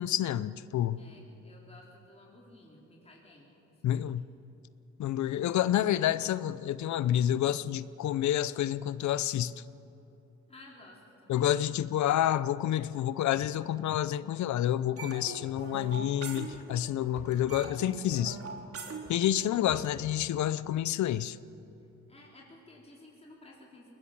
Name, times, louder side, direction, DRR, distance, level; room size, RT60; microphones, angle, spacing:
voice 1, 0.0-1.0 3.8-4.2 5.0-9.5 11.3-18.4 19.1-21.4, left 11 dB, 70° left, 0.7 m, -29 dB
voice 2, 0.9-4.3 10.5-11.5 17.0-17.6 22.1-23.9, left 2 dB, 20° left, 4.1 m, -55 dB
sound 1, 15.0-16.9 17.2-19.9, right 4 dB, 50° right, 3.1 m, -42 dB
21.0 x 20.0 x 7.4 m
cardioid pair, 90°, 30 cm